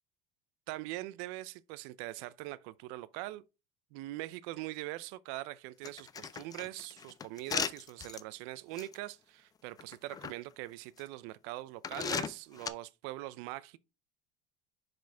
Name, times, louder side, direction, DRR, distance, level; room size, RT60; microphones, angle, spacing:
voice 1, 0.7-3.4 3.9-13.8, right 17 dB, 80° right, 0.5 m, -42 dB
sound 1, 5.8-8.2 8.8-8.9 9.8-10.3 11.0-11.1 11.8-12.7, left 7 dB, 25° left, 0.4 m, -37 dB
6.1 x 5.0 x 3.4 m
cardioid pair, 130°, 16 cm